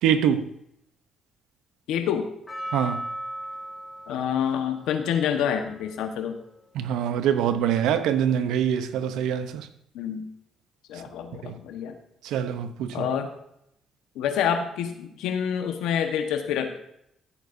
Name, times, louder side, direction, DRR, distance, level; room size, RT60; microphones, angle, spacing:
voice 1, 0.0-0.5 2.7-3.1 6.7-9.7 11.4-11.6 12.2-13.1, right 9 dB, 85° right, 0.8 m, -24 dB
voice 2, 1.9-2.3 4.1-6.4 9.9-10.2 10.9-11.9 12.9-13.3 14.1-16.8, left 8 dB, 85° left, 1.3 m, -27 dB
Percussion, 2.5-6.8 7.5-7.6, right 1 dB, 20° left, 2.5 m, -38 dB
14.5 x 8.3 x 2.7 m
cardioid pair, 90°, 0 cm